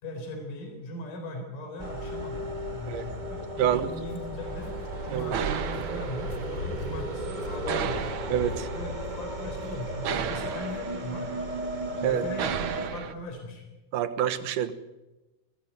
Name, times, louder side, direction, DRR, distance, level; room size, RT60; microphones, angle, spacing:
voice 1, 0.0-4.7 5.0-8.2 8.7-11.3 12.0-13.6, left 1 dB, 70° left, 4 dB, 5.6 m, -39 dB
sound 1, 1.8-12.9, right 1 dB, 30° right, 0.8 m, -35 dB
voice 2, 3.6-3.9 5.1-5.3 8.3-8.7 12.0-12.2 13.9-14.7, right 10 dB, 75° right, 10 dB, 2.6 m, -27 dB
Walk footsteps, 3.8-10.8, left 4 dB, 35° left, 1.4 m, -42 dB
sound 2, 4.4-13.1, right 7 dB, 90° right, 1.1 m, -36 dB
20.0 x 16.5 x 9.3 m, 1.1 s
omnidirectional pair, 3.9 m